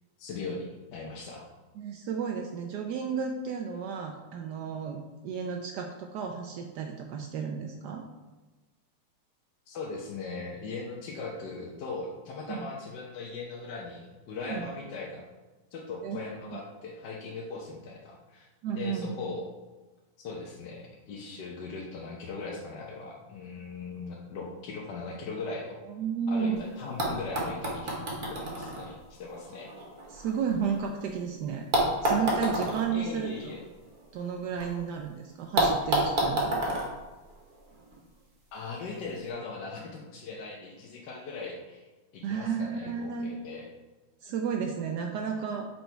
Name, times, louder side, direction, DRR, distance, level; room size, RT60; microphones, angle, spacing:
voice 1, 0.2-1.5 9.7-15.2 15.7-18.5 18.8-19.5 20.2-25.8 26.3-29.7 32.9-33.6 38.5-41.8 42.1-43.7, left 3 dB, 65° left, -2 dB, 1.2 m, -39 dB
voice 2, 1.8-8.0 12.5-12.7 14.5-14.7 16.0-16.6 18.6-19.2 25.9-26.6 30.1-31.6 32.0-33.5 34.1-36.8 42.2-43.3 44.2-45.7, right 6 dB, 85° right, 3 dB, 0.9 m, -33 dB
sound 1, 26.5-26.6 27.0-31.1 31.7-34.7 35.0-35.1 35.6-37.9 38.9-39.0, right 1 dB, 45° right, 1.5 m, -30 dB
5.5 x 4.4 x 4.5 m, 1.2 s
omnidirectional pair, 2.3 m